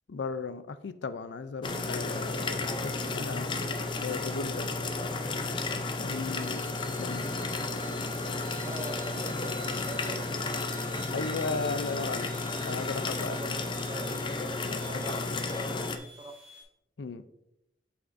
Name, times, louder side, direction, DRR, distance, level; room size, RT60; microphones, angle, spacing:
voice 1, 0.1-3.5 4.0-4.7 6.0-7.3 11.1-12.3 12.6-13.6 14.6-14.9 17.0-17.2, left 4 dB, 90° left, 12 dB, 0.5 m, -36 dB
sound 1, 1.6-16.0, left 3 dB, 25° left, 0.5 m, -33 dB
sound 2, 6.4-16.6, right 2 dB, 10° right, 2.0 m, -51 dB
voice 2, 8.6-10.4 13.1-14.3 14.8-16.3, right 2 dB, 25° right, 7 dB, 0.6 m, -43 dB
8.0 x 6.1 x 2.6 m, 0.82 s
head